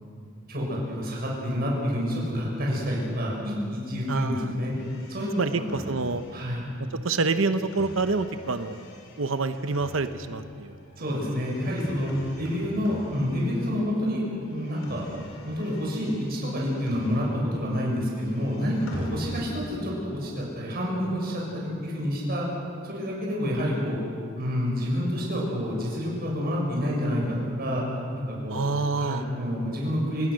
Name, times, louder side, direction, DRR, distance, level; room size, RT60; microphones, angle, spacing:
voice 1, 0.5-4.7 5.1-5.6 6.3-6.6 11.0-12.1 12.4-14.2 14.5-15.0 15.4-22.4 22.8-24.0 24.4-27.8 28.1-28.6 29.0-30.3, equal, 50° right, -3 dB, 6.9 m, -28 dB
voice 2, 4.1-4.5 5.4-6.2 7.0-8.8 9.2-10.8 11.1-11.2 28.5-29.2, right 3 dB, 85° right, 9 dB, 1.0 m, -27 dB
sound 1, 4.7-14.0 14.2-17.7 17.9-19.8, equal, 85° left, 4.3 m, -44 dB
28.5 x 18.5 x 6.5 m, 2.4 s
head